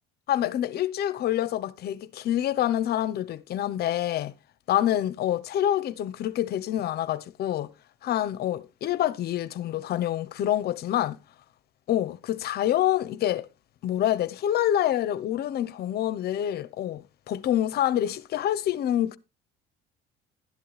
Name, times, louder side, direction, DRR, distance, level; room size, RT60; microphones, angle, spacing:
voice 1, 0.3-4.3 4.7-7.7 8.0-11.2 11.9-13.5 13.8-19.2, left 12 dB, 60° left, 1.0 m, -27 dB
12.0 x 10.5 x 3.3 m
cardioid pair, 120°, 19 cm